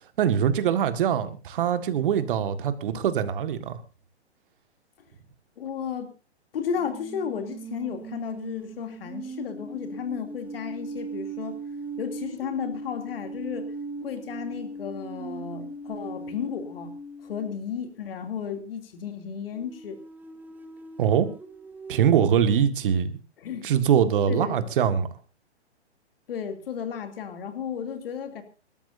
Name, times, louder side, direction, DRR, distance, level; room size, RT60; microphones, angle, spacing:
voice 1, 0.2-3.8 21.0-21.3 21.9-23.2 23.6-25.1, right 8 dB, 50° right, 1.8 m, -23 dB
voice 2, 5.6-6.1 6.5-11.6 12.0-13.7 14.0-16.9 17.2-20.0 23.4-23.7 24.3-24.7 26.3-28.4, left 7 dB, 55° left, 2.9 m, -33 dB
sound 1, 6.7-17.8 19.5-22.2, right 3 dB, 5° right, 1.0 m, -39 dB
26.0 x 13.0 x 2.7 m
figure-of-eight pair, 125°, 34 cm